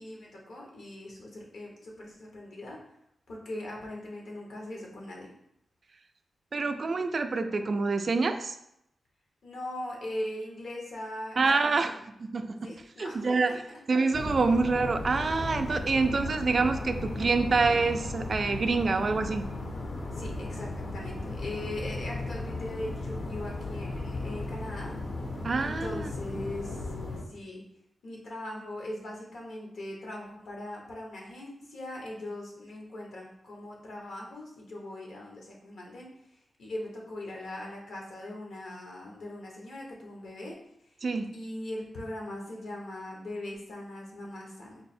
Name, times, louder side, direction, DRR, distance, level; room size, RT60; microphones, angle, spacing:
voice 1, 0.0-2.8 3.3-5.3 9.4-11.9 12.6-13.6 20.1-24.9 25.6-26.9 27.3-27.6 28.0-36.1 36.6-40.6 41.3-44.8, left 1 dB, 80° left, -1 dB, 1.0 m, -40 dB
voice 2, 6.5-8.6 11.4-12.7 13.0-13.5 13.9-19.5 25.4-26.1 41.0-41.3, right 4 dB, 50° right, 7 dB, 0.3 m, -26 dB
sound 1, 14.1-27.2, left 2 dB, 60° left, 0.6 m, -36 dB
3.9 x 2.0 x 4.2 m, 0.77 s
cardioid pair, 85°, 0 cm